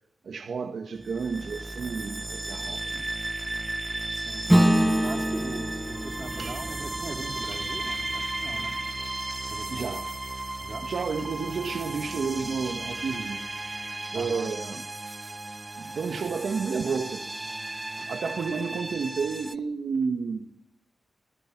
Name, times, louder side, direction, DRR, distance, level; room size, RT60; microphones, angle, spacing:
voice 1, 0.2-3.1 6.3-6.6 7.5-7.6 9.7-10.1 10.8-13.4 14.1-14.8 15.8-20.5, right 5 dB, 70° right, 1.6 m, -31 dB
sound 1, 1.0-19.6, right 2 dB, 20° right, 0.9 m, -35 dB
voice 2, 4.1-8.8 9.5-10.1 10.6-10.9 14.1-14.5, right 3 dB, 35° right, 3.8 m, -40 dB
Acoustic guitar / Strum, 4.5-9.3, equal, 5° right, 1.2 m, -26 dB
25.0 x 21.5 x 6.0 m
wide cardioid pair, 145°, 0 cm